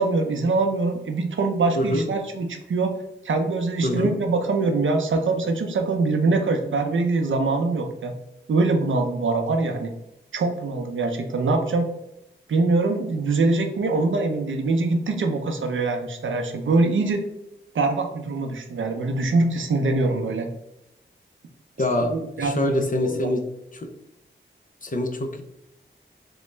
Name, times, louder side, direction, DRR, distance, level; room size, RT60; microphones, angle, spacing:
voice 1, 0.0-2.9 3.2-8.1 8.5-9.9 10.3-11.8 12.5-17.3 17.7-20.5 22.1-23.3, right 3 dB, 75° right, 5 dB, 0.6 m, -23 dB
voice 2, 3.8-4.1 21.8-23.4 23.7-23.9 24.8-25.4, left 1 dB, 40° left, 4 dB, 0.6 m, -25 dB
3.8 x 2.1 x 3.2 m, 0.85 s
wide cardioid pair, 70°, 20 cm